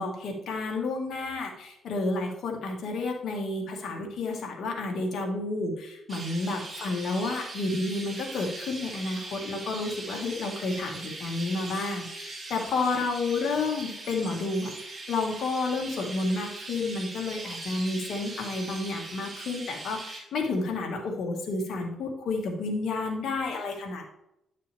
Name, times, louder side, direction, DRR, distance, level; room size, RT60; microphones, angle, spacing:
voice 1, 0.0-24.1, left 3 dB, 65° left, 1 dB, 2.1 m, -31 dB
Chirp tweet, 6.1-20.2, right 2 dB, 30° right, 2.6 m, -40 dB
10.5 x 6.5 x 3.6 m, 0.83 s
cardioid pair, 90°, 0 cm